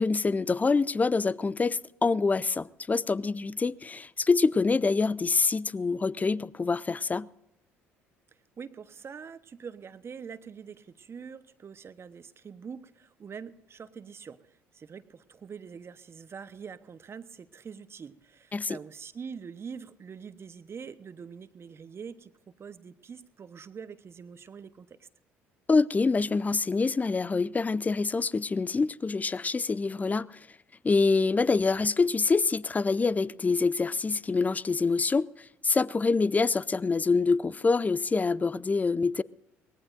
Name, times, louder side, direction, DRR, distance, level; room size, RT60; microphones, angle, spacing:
voice 1, 0.0-7.3 18.5-18.8 25.7-30.4 30.8-35.3 35.6-39.2, left 4 dB, 25° left, 0.5 m, -26 dB
voice 2, 8.6-25.1, right 6 dB, 40° right, 1.0 m, -44 dB
23.5 x 18.5 x 2.6 m
hypercardioid pair, 55°, 7 cm